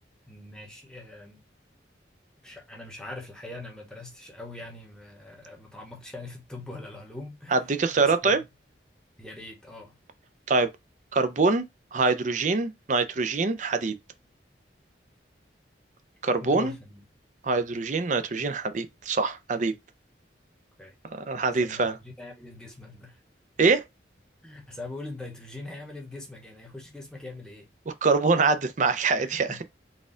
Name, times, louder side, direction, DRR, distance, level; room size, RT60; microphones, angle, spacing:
voice 1, 0.3-1.4 2.4-7.7 7.9-8.4 9.2-10.0 16.4-17.0 20.8-20.9 21.6-23.2 24.4-27.7 29.2-29.6, left 2 dB, 5° left, 0.9 m, -42 dB
voice 2, 7.5-8.4 10.5-10.7 11.1-11.6 11.9-13.9 16.2-16.7 17.4-19.7 21.1-21.9 23.6-23.8 27.9-29.5, right 4 dB, 40° right, 0.5 m, -24 dB
4.1 x 2.3 x 3.7 m
head